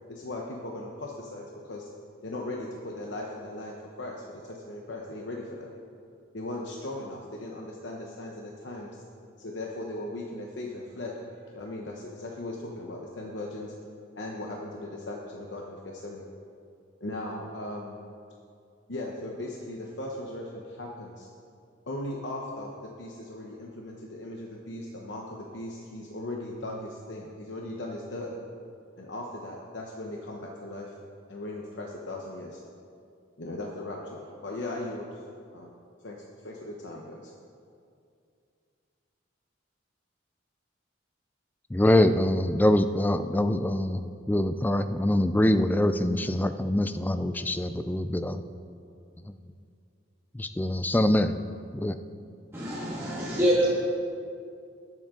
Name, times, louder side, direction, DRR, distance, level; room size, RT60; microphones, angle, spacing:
voice 1, 0.1-1.9 2.2-5.7 6.3-9.0 9.4-11.1 11.5-13.7 14.2-16.3 17.0-18.0 18.9-21.3 21.9-28.3 29.0-31.0 31.3-32.6 33.4-35.2 35.5-35.7 36.0-37.3, left 1 dB, 60° left, -1 dB, 1.0 m, -38 dB
voice 2, 41.7-48.4 49.3-49.4 50.3-51.4 51.7-52.0, left 1 dB, 10° left, 10 dB, 0.4 m, -24 dB
voice 3, 52.5-53.7, equal, 15° right, -9 dB, 1.8 m, -25 dB
20.0 x 7.7 x 3.8 m, 2.4 s
head